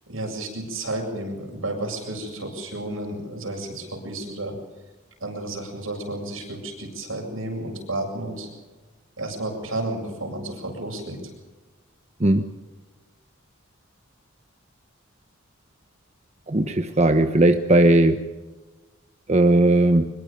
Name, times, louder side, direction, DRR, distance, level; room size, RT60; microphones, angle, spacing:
voice 1, 0.1-4.5 5.2-8.5 9.2-11.2, right 1 dB, 80° right, 1 dB, 7.7 m, -32 dB
voice 2, 16.5-18.2 19.3-20.1, right 1 dB, 35° right, 6 dB, 1.0 m, -17 dB
24.5 x 22.0 x 5.3 m, 1.2 s
head